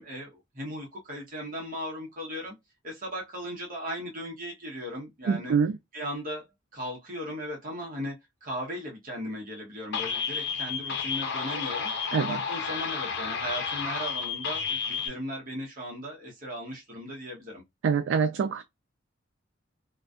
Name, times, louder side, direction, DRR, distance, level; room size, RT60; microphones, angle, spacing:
voice 1, 0.0-2.6 2.8-5.5 5.9-6.4 6.7-11.9 12.3-17.6, equal, 45° right, 0.9 m, -37 dB
voice 2, 5.3-5.8 12.1-12.4 17.8-18.6, right 6 dB, 65° right, 0.3 m, -25 dB
sound 1, 9.9-15.1, left 6 dB, 60° left, 0.6 m, -31 dB
2.5 x 2.2 x 2.2 m
head